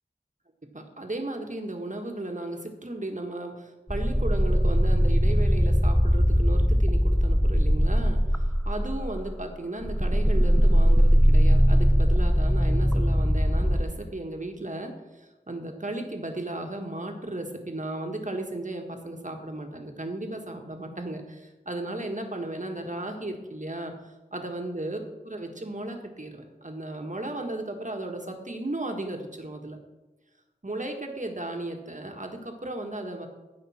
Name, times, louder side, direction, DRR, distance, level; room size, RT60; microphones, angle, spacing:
voice 1, 0.7-25.0 25.2-29.8 30.6-33.3, right 1 dB, 50° right, 3 dB, 1.5 m, -35 dB
sound 1, 3.9-9.4 9.8-13.8, equal, ahead, 0.5 m, -21 dB
15.5 x 5.4 x 4.3 m, 1.1 s
wide cardioid pair, 45°, 16 cm